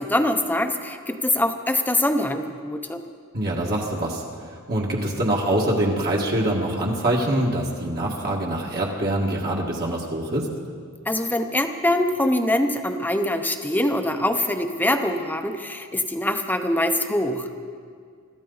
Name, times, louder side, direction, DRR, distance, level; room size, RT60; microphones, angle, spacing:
voice 1, 0.0-3.0 11.1-17.5, left 1 dB, 10° left, 6 dB, 0.8 m, -23 dB
voice 2, 3.3-10.5, right 1 dB, 45° right, -3 dB, 1.7 m, -24 dB
24.5 x 13.5 x 4.0 m, 2.1 s
head